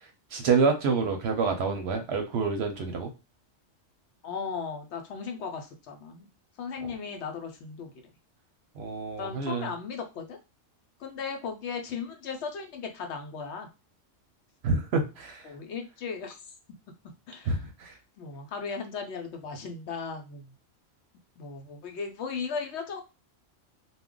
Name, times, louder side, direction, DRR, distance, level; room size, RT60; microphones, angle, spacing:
voice 1, 0.3-3.1 8.8-9.7 14.6-15.5 17.5-17.9, right 4 dB, 65° right, 5 dB, 0.8 m, -27 dB
voice 2, 4.2-6.3 6.6-7.9 9.2-10.4 11.0-13.7 15.4-16.4 17.0-17.6 18.2-20.5 21.4-23.0, left 5 dB, 70° left, 4 dB, 0.8 m, -36 dB
2.3 x 2.1 x 3.6 m, 0.29 s
omnidirectional pair, 1.3 m